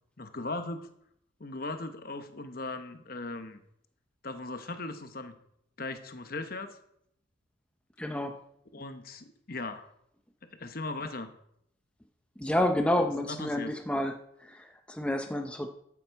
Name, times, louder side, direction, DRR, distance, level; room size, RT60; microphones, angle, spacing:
voice 1, 0.2-0.9 1.4-3.6 4.2-5.4 5.8-6.8 8.7-9.9 10.4-11.3 13.0-13.7, left 2 dB, 50° left, 9 dB, 1.0 m, -38 dB
voice 2, 8.0-8.3 12.4-15.7, left 1 dB, 5° left, 5 dB, 0.6 m, -29 dB
13.5 x 7.3 x 4.6 m, 0.72 s
head